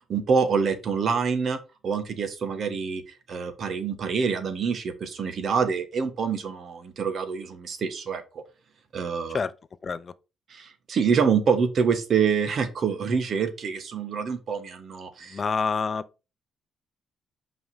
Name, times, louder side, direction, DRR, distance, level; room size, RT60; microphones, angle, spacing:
voice 1, 0.1-1.6 1.8-3.0 3.3-8.2 8.9-9.4 10.5-15.4, right 6 dB, 55° right, 1.6 m, -26 dB
voice 2, 9.8-10.1 15.3-16.1, left 5 dB, 40° left, 0.5 m, -27 dB
5.7 x 5.2 x 5.5 m
cardioid pair, 90°, 0 cm